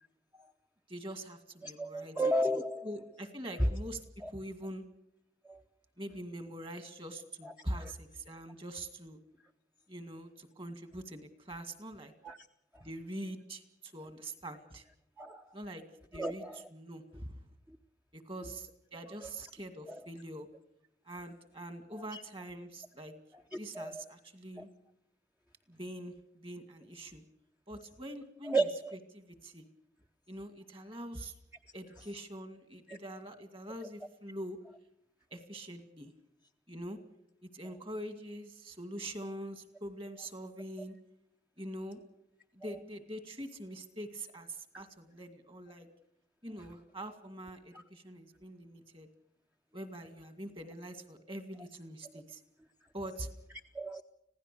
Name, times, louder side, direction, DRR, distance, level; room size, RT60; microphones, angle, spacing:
voice 1, 0.9-2.2 2.8-4.8 6.0-9.2 9.9-12.1 12.8-14.8 15.5-15.8 16.1-17.4 18.1-20.5 21.1-23.1 23.5-24.7 25.7-27.2 27.7-28.7 29.1-29.7 30.3-31.3 31.7-34.6 35.3-36.1 36.7-37.0 37.5-40.9 41.6-42.0 42.5-45.9 46.4-49.1 49.7-52.4 52.9-53.3, right 1 dB, 30° right, 9 dB, 2.2 m, -44 dB
voice 2, 1.6-2.9 3.6-3.7 4.2-4.3 5.5-5.6 7.4-7.5 7.8-7.9 12.2-12.4 15.2-15.4 16.2-16.6 19.9-20.0 22.1-22.2 23.5-24.0 24.6-24.7 28.5-28.9 32.9-33.0 53.7-54.0, right 1 dB, 10° right, 5 dB, 0.7 m, -33 dB
26.0 x 16.5 x 6.8 m, 0.78 s
head